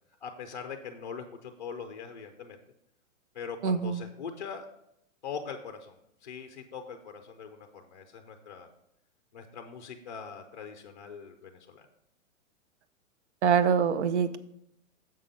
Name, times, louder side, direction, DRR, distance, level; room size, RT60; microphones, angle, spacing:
voice 1, 0.2-2.6 3.3-4.7 5.2-8.7 9.3-11.9, left 6 dB, 35° left, 6 dB, 0.5 m, -42 dB
voice 2, 3.6-4.0 13.4-14.4, right 7 dB, 60° right, 13 dB, 0.7 m, -24 dB
7.5 x 5.7 x 5.0 m, 0.78 s
hypercardioid pair, 175°, 40 cm